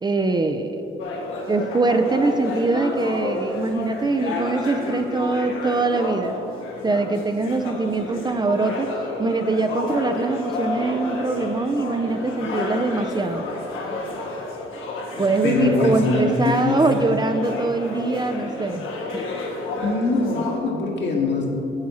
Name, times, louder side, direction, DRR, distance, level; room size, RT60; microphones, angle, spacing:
voice 1, 0.0-0.9 1.5-6.4 6.8-8.9 9.2-13.5 15.2-19.2, right 3 dB, 20° right, 7 dB, 0.4 m, -23 dB
Bar Ambience, 1.0-20.6, left 2 dB, 85° left, 1.3 m, -31 dB
voice 2, 15.2-16.8 19.8-21.5, left 3 dB, 65° left, -1 dB, 1.6 m, -23 dB
8.7 x 7.2 x 4.2 m, 2.9 s
cardioid pair, 90°, 20 cm